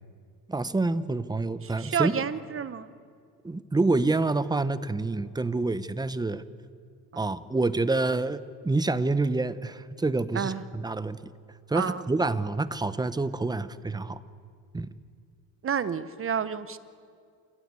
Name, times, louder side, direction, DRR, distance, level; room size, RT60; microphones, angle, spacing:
voice 1, 0.5-2.1 3.4-6.4 7.2-11.3 11.7-14.2 14.7-14.9, right 3 dB, 10° right, 14 dB, 0.7 m, -27 dB
voice 2, 1.6-2.9 7.1-7.2 10.3-10.6 11.7-12.0 15.6-16.8, right 7 dB, 30° right, 14 dB, 1.0 m, -30 dB
28.5 x 14.5 x 8.3 m, 2.2 s
cardioid pair, 110°, 41 cm